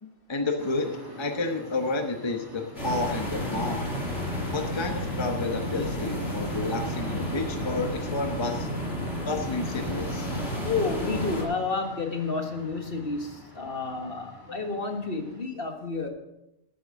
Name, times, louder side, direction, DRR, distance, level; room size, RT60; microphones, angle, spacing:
voice 1, 0.0-3.9 4.5-8.7 9.2-10.3, left 3 dB, 25° left, 4 dB, 1.0 m, -30 dB
sound 1, 0.6-15.4, equal, 20° right, 2.2 m, -45 dB
sound 2, 2.8-11.4, equal, 75° left, 4.6 m, -31 dB
voice 2, 10.6-16.1, left 4 dB, 50° left, 5 dB, 1.7 m, -30 dB
12.5 x 9.1 x 6.4 m, 0.90 s
omnidirectional pair, 1.3 m